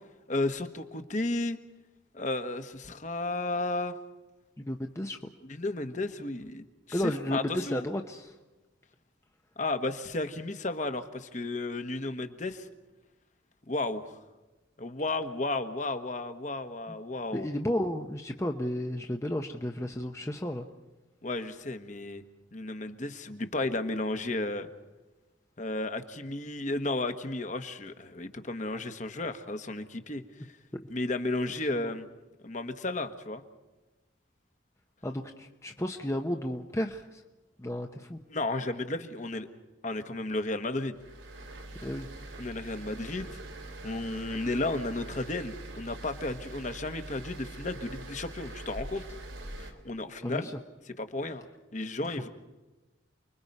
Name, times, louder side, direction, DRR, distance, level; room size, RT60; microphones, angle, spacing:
voice 1, 0.3-1.6 2.1-3.9 5.5-7.9 9.6-12.7 13.7-14.1 14.8-17.5 21.2-22.2 22.5-24.7 25.6-30.2 30.9-32.1 32.4-33.4 38.3-39.5 39.8-41.0 42.4-43.4 43.8-49.0 49.6-50.5 50.9-51.4 51.7-52.3, left 2 dB, 40° left, 8 dB, 1.3 m, -33 dB
voice 2, 4.6-5.2 6.9-8.4 17.3-20.7 31.8-31.9 35.0-37.2 37.6-38.2 41.8-42.1 50.2-50.5 52.1-52.2, left 1 dB, 15° left, 4 dB, 0.8 m, -33 dB
sound 1, 40.9-49.7, right 1 dB, 85° right, 3.1 m, -43 dB
29.0 x 22.0 x 5.4 m, 1.1 s
head